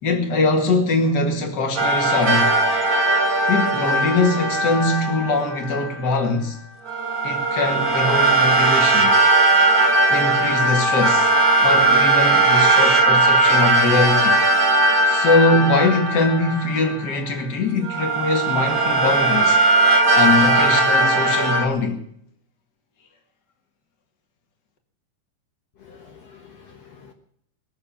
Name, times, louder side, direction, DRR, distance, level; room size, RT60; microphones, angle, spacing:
voice 1, 0.0-2.6 3.5-6.6 7.2-9.1 10.1-11.3 11.6-14.4 15.1-19.6 20.1-22.0, left 3 dB, 35° left, 1.7 m, -22 dB
sound 1, 1.8-5.9 6.9-17.3 17.8-21.7, right 2 dB, 35° right, 1.4 m, -18 dB
voice 2, 25.8-27.1, left 6 dB, 80° left, 1.4 m, -47 dB
21.0 x 7.1 x 8.8 m
omnidirectional pair, 5.1 m